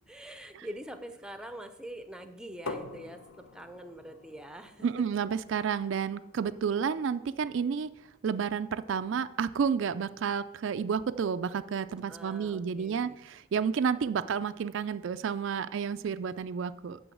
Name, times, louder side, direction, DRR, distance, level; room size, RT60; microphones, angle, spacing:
voice 1, 0.1-4.9 12.1-13.2, right 1 dB, 5° right, 9 dB, 0.6 m, -44 dB
sound 1, 2.7-8.3, left 3 dB, 80° left, 1.0 m, -47 dB
voice 2, 4.8-7.9 8.2-17.0, right 6 dB, 60° right, 12 dB, 0.3 m, -31 dB
7.8 x 6.1 x 7.7 m, 0.91 s
head